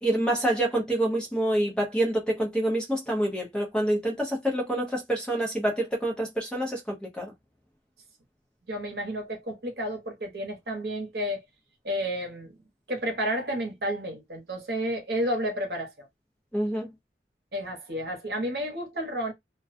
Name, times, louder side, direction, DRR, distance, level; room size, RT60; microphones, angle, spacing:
voice 1, 0.0-7.3 16.5-16.9, right 1 dB, 5° left, 0.6 m, -27 dB
voice 2, 8.7-11.4 11.8-12.6 12.9-16.1 17.5-19.3, equal, 65° right, 0.9 m, -31 dB
2.4 x 2.2 x 2.5 m
head